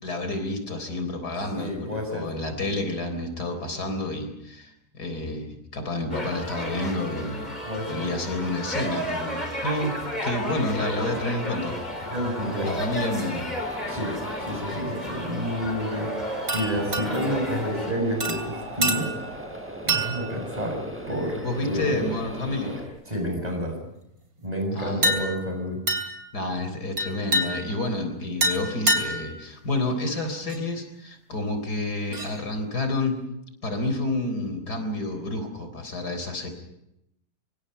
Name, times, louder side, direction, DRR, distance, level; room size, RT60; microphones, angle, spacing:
voice 1, 0.0-7.6 7.9-10.0 10.2-11.7 12.6-13.5 21.4-22.8 24.7-25.0 26.3-33.2 33.6-36.5, left 2 dB, 90° left, 7 dB, 4.4 m, -29 dB
voice 2, 1.5-2.3 7.7-8.2 12.0-12.8 13.9-14.1 14.4-19.1 19.9-20.8 21.1-21.4 21.7-22.1 23.1-23.8 24.4-25.8, equal, 25° right, 3 dB, 7.0 m, -29 dB
sound 1, 6.1-17.9, equal, 25° left, 4.4 m, -33 dB
sound 2, 10.9-22.9, right 1 dB, 5° right, 5.8 m, -38 dB
sound 3, 16.5-17.4 18.2-19.4 19.9-20.4 21.0-21.2 25.0-25.5 25.9-26.3 27.0-27.8 28.4-29.4 30.5-30.6 32.1-32.4, right 1 dB, 65° right, 3.4 m, -27 dB
25.5 x 24.0 x 5.5 m, 0.82 s
omnidirectional pair, 1.7 m